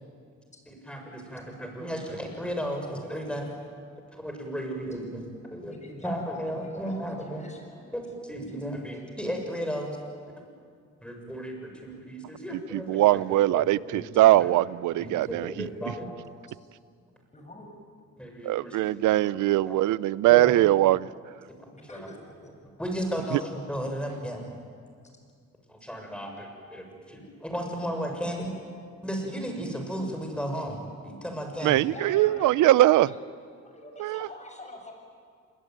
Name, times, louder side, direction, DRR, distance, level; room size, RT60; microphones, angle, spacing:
voice 1, 0.7-3.5 4.2-5.7 6.0-7.4 7.9-10.0 11.0-14.6 15.0-16.1 18.2-19.1 19.6-19.7 20.2-20.5 21.5-22.1 22.8-24.4 25.7-28.5 29.0-31.8, equal, 5° left, 3 dB, 6.8 m, -34 dB
voice 2, 5.7-8.0 17.3-17.7 21.7-22.2 22.4-22.5 31.9-33.2 33.6-34.9, left 1 dB, 25° left, 2 dB, 7.4 m, -45 dB
voice 3, 12.7-15.7 18.4-21.1 31.6-33.1 34.0-34.3, right 16 dB, 80° right, 20 dB, 0.6 m, -21 dB
27.0 x 21.5 x 9.4 m, 2.2 s
cardioid pair, 90°, 30 cm